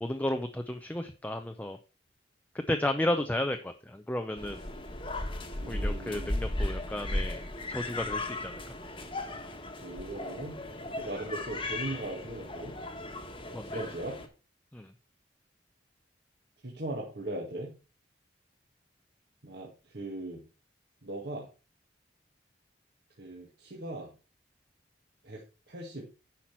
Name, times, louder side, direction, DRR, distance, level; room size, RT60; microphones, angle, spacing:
voice 1, 0.0-1.8 2.7-4.6 5.7-7.4 7.7-8.5 13.5-13.6 14.7-14.9, left 1 dB, 10° left, 6 dB, 0.6 m, -32 dB
sound 1, 4.4-14.3, left 1 dB, 25° left, 1.3 m, -36 dB
voice 2, 5.6-6.3 9.8-10.6 10.8-12.7 13.7-14.2 16.6-17.7 19.4-20.4 21.0-21.5 23.2-24.1 25.2-25.4 25.7-26.0, right 1 dB, 55° right, -2 dB, 1.8 m, -39 dB
10.0 x 5.9 x 4.5 m, 0.33 s
head